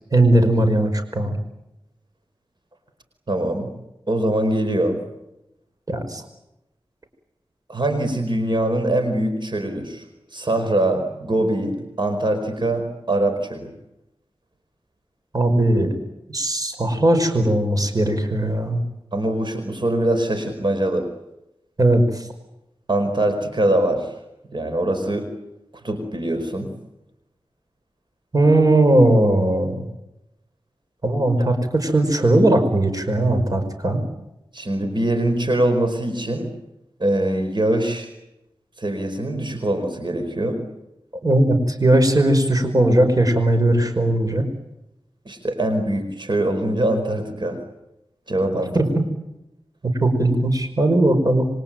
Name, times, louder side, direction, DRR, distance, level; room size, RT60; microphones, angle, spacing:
voice 1, 0.1-1.4 5.9-6.2 15.3-16.0 16.3-18.8 21.8-22.3 28.3-29.9 31.0-34.0 41.2-44.5 48.7-48.9 49.8-51.5, right 1 dB, 40° right, 6 dB, 5.2 m, -18 dB
voice 2, 3.3-3.7 4.1-5.0 7.7-10.0 10.3-13.7 19.1-21.1 22.9-24.1 24.5-25.3 25.8-26.7 34.5-36.5 37.0-38.1 38.8-40.6 45.2-47.6 48.3-48.8, right 1 dB, 55° right, 6 dB, 4.9 m, -23 dB
27.5 x 24.0 x 9.1 m, 0.91 s
wide cardioid pair, 70°, 9 cm